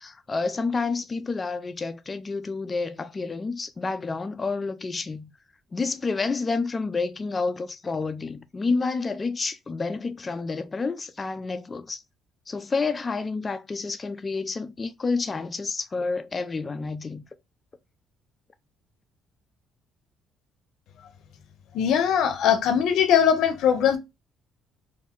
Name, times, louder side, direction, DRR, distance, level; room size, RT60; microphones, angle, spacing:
voice 1, 0.0-5.3 5.7-12.0 12.5-17.2, left 4 dB, 25° left, 0.4 m, -29 dB
voice 2, 21.7-24.0, left 8 dB, 75° left, 0.6 m, -20 dB
2.6 x 2.1 x 3.6 m
cardioid pair, 95°, 0 cm